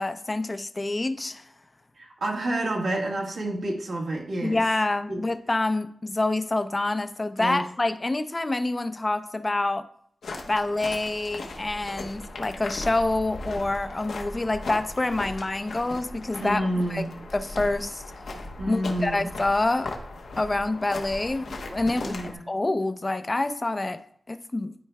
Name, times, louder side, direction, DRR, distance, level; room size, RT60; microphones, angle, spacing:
voice 1, 0.0-1.4 4.4-9.9 10.5-16.6 16.9-17.1 17.3-18.0 18.7-19.9 20.4-21.5 21.7-22.2 22.5-24.0 24.3-24.7, left 2 dB, 25° left, 10 dB, 0.5 m, -27 dB
voice 2, 2.0-4.6 5.1-5.2 7.4-7.6 16.4-17.2 18.6-19.2 21.9-22.4, right 1 dB, 80° right, -2 dB, 1.5 m, -29 dB
sound 1, 10.2-22.3, left 2 dB, 90° left, 1.0 m, -38 dB
12.5 x 4.5 x 2.3 m, 0.63 s
wide cardioid pair, 95°, 0 cm